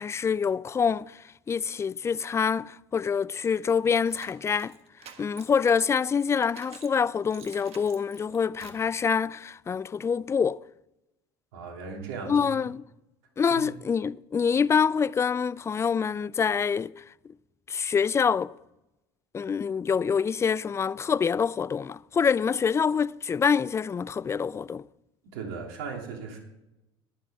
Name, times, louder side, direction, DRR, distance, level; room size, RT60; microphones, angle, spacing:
voice 1, 0.0-4.8 5.2-10.6 12.3-12.8 13.4-17.0 17.7-18.5 19.3-24.8, left 6 dB, 20° left, 0.3 m, -26 dB
sound 1, 3.4-7.0 7.3-8.9, right 8 dB, 45° right, 1.5 m, -50 dB
voice 2, 11.5-12.7 13.4-13.6 25.2-26.4, right 5 dB, 70° right, 2.8 m, -37 dB
21.5 x 7.5 x 3.6 m
hypercardioid pair, 75°, 14 cm